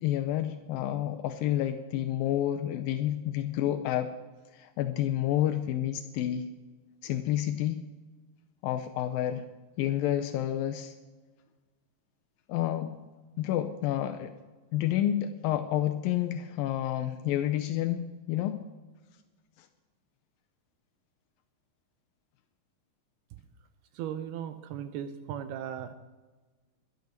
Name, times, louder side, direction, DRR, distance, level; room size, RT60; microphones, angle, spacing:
voice 1, 0.0-4.1 4.5-6.5 7.0-7.9 8.6-9.5 9.8-10.9 12.5-12.9 13.4-14.4 14.7-18.6 19.6-19.7, left 12 dB, 90° left, 8 dB, 2.0 m, -29 dB
voice 2, 23.9-25.9, right 9 dB, 80° right, 10 dB, 2.4 m, -37 dB
12.0 x 12.0 x 6.5 m, 1.3 s
omnidirectional pair, 4.9 m